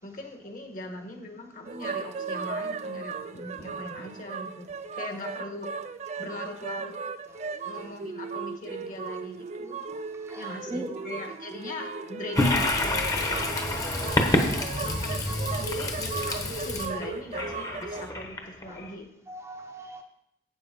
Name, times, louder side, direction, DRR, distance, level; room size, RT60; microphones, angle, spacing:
voice 1, 0.0-4.7 4.9-5.7 6.2-6.9 7.6-9.8 10.3-13.1 13.5-13.9 14.8-19.1, left 1 dB, 45° left, 4 dB, 1.6 m, -40 dB
sound 1, 1.7-18.1, right 4 dB, 40° right, 0.4 m, -37 dB
voice 2, 10.3-10.9 14.5-15.2 15.5-15.6 18.7-18.8 19.3-20.0, right 1 dB, 15° right, 3 dB, 0.8 m, -40 dB
Toilet flush, 12.4-18.9, left 1 dB, 20° left, 1.1 m, -28 dB
8.1 x 7.2 x 5.3 m, 0.81 s
head